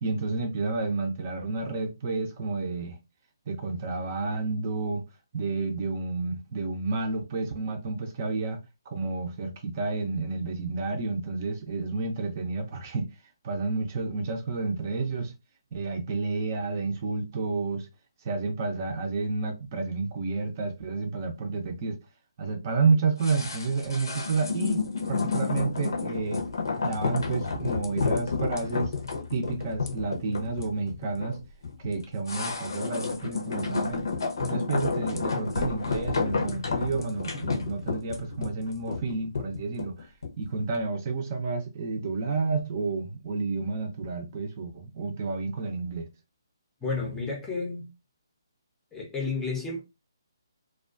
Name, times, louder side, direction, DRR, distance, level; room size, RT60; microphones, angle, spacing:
voice 1, 0.0-3.0 3.5-5.0 5.3-8.6 8.9-13.1 13.4-15.3 15.7-17.9 18.2-22.0 22.4-24.8 25.1-26.5 26.8-28.9 29.3-31.4 31.8-34.1 34.4-40.1 40.4-46.1, right 3 dB, 35° right, 0.5 m, -30 dB
sound 1, 23.2-40.4 40.7-40.8, left 4 dB, 65° left, 0.7 m, -31 dB
voice 2, 46.8-47.9 48.9-49.8, left 4 dB, 10° left, 0.6 m, -31 dB
2.3 x 2.2 x 2.4 m
figure-of-eight pair, 145°, 2 cm